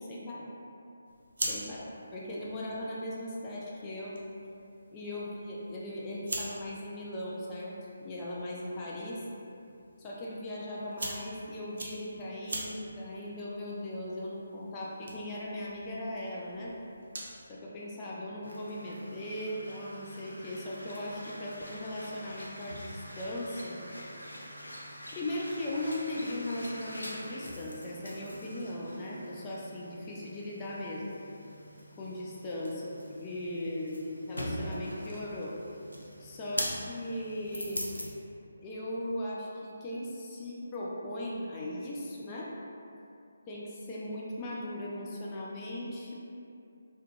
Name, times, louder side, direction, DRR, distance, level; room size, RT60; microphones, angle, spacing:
voice 1, 0.1-0.5 1.5-4.1 4.9-9.2 10.0-16.7 17.5-23.8 25.1-31.0 32.0-35.5 36.2-37.8 38.6-42.5 43.5-46.2, left 1 dB, 20° left, -5 dB, 0.3 m, -38 dB
sound 1, 1.0-17.5, right 2 dB, 60° right, 0.4 m, -44 dB
sound 2, 18.4-38.1, equal, 90° left, 0.4 m, -43 dB
2.3 x 2.2 x 2.9 m, 2.6 s
figure-of-eight pair, 150°, 0 cm